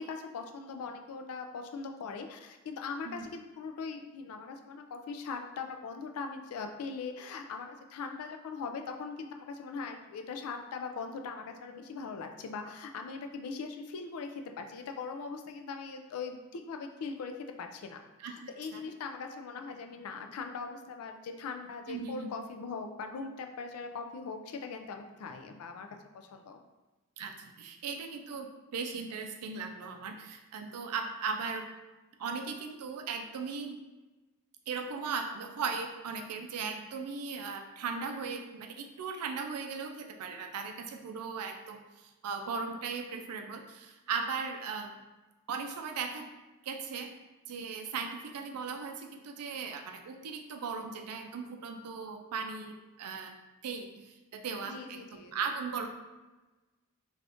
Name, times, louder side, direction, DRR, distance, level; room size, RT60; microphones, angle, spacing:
voice 1, 0.0-18.0 18.2-26.6 54.6-55.5, left 4 dB, 70° left, 5 dB, 0.3 m, -40 dB
voice 2, 21.9-22.3 27.2-31.7 32.2-33.8 34.7-45.0 45.5-46.3 46.6-47.1 47.5-53.3 53.6-55.0 55.3-55.9, right 5 dB, 90° right, 4 dB, 0.4 m, -38 dB
2.5 x 2.4 x 3.4 m, 1.1 s
head